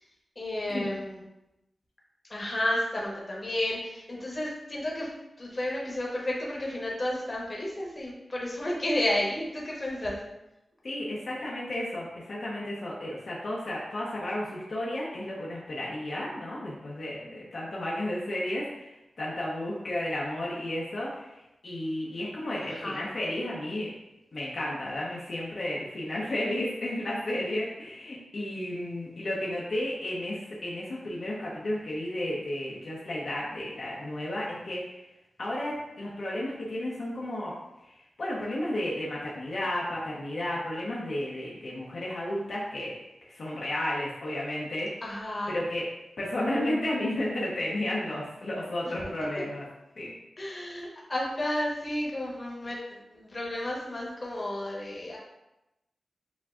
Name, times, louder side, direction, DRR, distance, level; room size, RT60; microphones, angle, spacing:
voice 1, 0.4-1.2 2.3-5.1 5.4-10.2 22.6-23.0 45.0-45.6 48.8-48.9 50.4-55.2, left 1 dB, 30° left, -4 dB, 1.0 m, -32 dB
voice 2, 10.8-23.9 24.3-35.1 35.4-37.5 37.8-43.0 43.3-45.0 45.5-45.8 46.2-49.6 50.0-50.1, left 1 dB, 55° left, -5 dB, 0.7 m, -33 dB
7.1 x 2.6 x 2.4 m, 0.94 s
wide cardioid pair, 175°, 0 cm